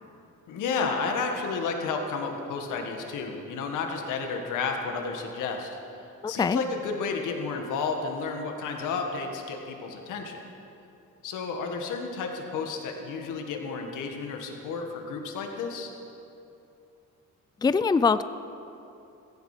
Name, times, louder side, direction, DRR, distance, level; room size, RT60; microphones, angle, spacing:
voice 1, 0.5-5.8 6.3-10.4 11.2-15.9, left 4 dB, 85° left, 3 dB, 1.8 m, -32 dB
voice 2, 6.2-6.6 17.6-18.2, left 5 dB, 15° left, 14 dB, 0.4 m, -23 dB
15.5 x 15.5 x 5.1 m, 2.8 s
cardioid pair, 90°, 30 cm